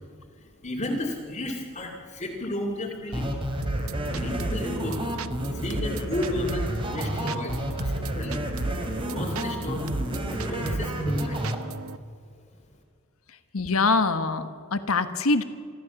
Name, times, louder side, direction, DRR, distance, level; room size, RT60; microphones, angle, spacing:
voice 1, 0.6-3.3 4.0-5.0 5.5-8.4 9.1-9.8 10.3-11.4, left 1 dB, 35° left, -2 dB, 2.6 m, -32 dB
sound 1, 3.1-11.6, equal, 25° right, 2.8 m, -31 dB
sound 2, 3.6-12.0, right 3 dB, 80° right, 0.8 m, -35 dB
voice 2, 13.5-15.4, left 3 dB, 80° left, 10 dB, 1.3 m, -24 dB
26.0 x 14.0 x 7.1 m, 2.2 s
head